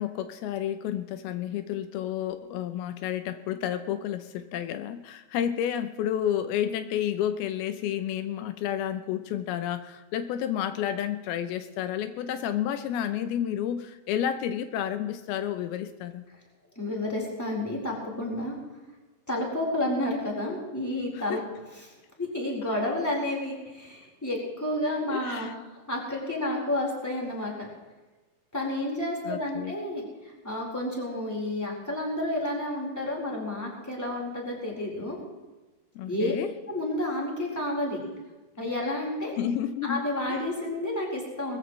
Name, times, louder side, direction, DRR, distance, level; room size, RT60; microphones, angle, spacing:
voice 1, 0.0-16.3 21.1-21.4 25.1-25.5 29.3-29.7 36.0-36.5 39.4-40.0 40.3-40.4, left 10 dB, 85° left, 9 dB, 2.7 m, -31 dB
voice 2, 16.8-18.5 19.3-21.4 21.7-21.9 22.2-25.5 25.9-27.7 28.5-35.2 36.1-36.3 36.7-38.0 38.6-39.3 39.8-41.6, left 1 dB, 5° left, -2 dB, 4.0 m, -30 dB
20.5 x 15.0 x 3.2 m, 1.2 s
omnidirectional pair, 4.4 m